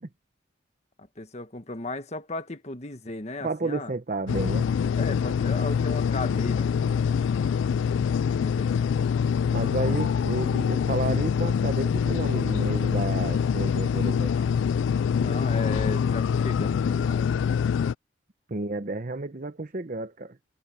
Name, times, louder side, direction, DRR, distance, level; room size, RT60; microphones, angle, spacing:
voice 1, 1.0-3.9 5.0-6.7 8.4-8.7 9.8-9.9 15.2-17.3, left 2 dB, 35° left, 1.4 m, -35 dB
voice 2, 3.4-4.7 9.5-14.3 18.5-20.4, right 2 dB, 45° right, 0.8 m, -31 dB
sound 1, 4.3-17.9, left 7 dB, 80° left, 0.3 m, -25 dB
head